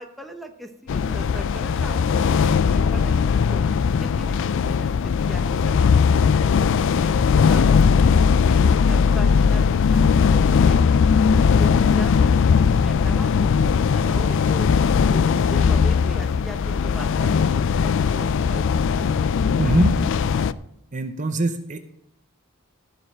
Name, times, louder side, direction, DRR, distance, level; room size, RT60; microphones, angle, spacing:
voice 1, 0.0-3.6 4.0-7.8 8.5-10.0 10.3-10.9 11.6-14.7 15.1-19.1, right 1 dB, ahead, 5 dB, 0.9 m, -39 dB
sound 1, 0.9-20.5, left 6 dB, 55° left, 0.3 m, -19 dB
voice 2, 19.6-19.9 20.4-20.5 20.9-21.8, right 2 dB, 35° right, 8 dB, 0.7 m, -22 dB
15.0 x 5.3 x 6.0 m, 0.76 s
head